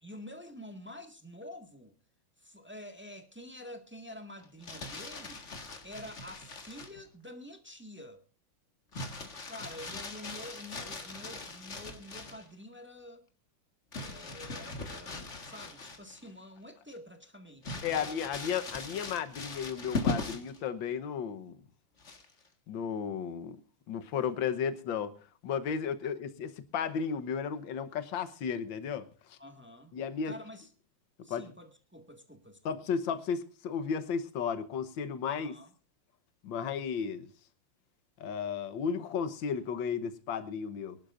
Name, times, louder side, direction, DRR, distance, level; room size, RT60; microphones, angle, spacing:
voice 1, 0.0-1.9 2.4-5.4 5.8-8.2 9.5-13.3 14.0-18.2 29.4-29.9 30.2-30.7 31.2-32.8 35.3-35.7, left 1 dB, 5° right, 1.5 m, -48 dB
Crumpling crinkling, 4.4-7.0 8.9-12.5 13.9-16.3 16.7-16.8 17.6-20.6 22.0-22.5, left 3 dB, 35° left, 1.9 m, -39 dB
voice 2, 17.8-21.6 22.7-23.6 23.9-25.1 25.4-29.4 29.9-30.3 31.3-31.5 32.7-35.5 36.4-37.3 38.2-41.0, left 7 dB, 65° left, 1.7 m, -34 dB
23.5 x 11.5 x 2.5 m
omnidirectional pair, 2.4 m